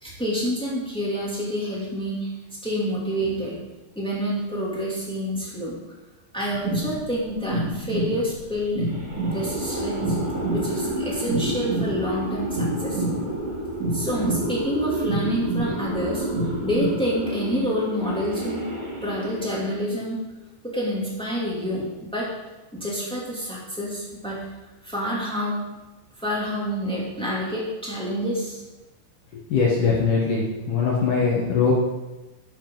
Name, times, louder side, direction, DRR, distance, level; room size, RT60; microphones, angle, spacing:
voice 1, 0.0-2.3 2.6-3.6 3.9-5.8 6.3-8.8 9.3-10.1 10.5-13.0 13.9-16.2 16.6-18.6 19.0-20.2 20.7-22.3 22.7-24.4 24.8-25.6 26.2-28.6, equal, ahead, -6 dB, 1.4 m, -28 dB
sound 1, 6.5-16.9, right 2 dB, 70° right, 4.3 m, -29 dB
sound 2, 8.9-20.0, right 1 dB, 45° right, 5.8 m, -31 dB
voice 2, 29.3-31.7, left 5 dB, 65° left, -3 dB, 2.0 m, -22 dB
12.0 x 9.3 x 4.0 m, 1.1 s
omnidirectional pair, 5.3 m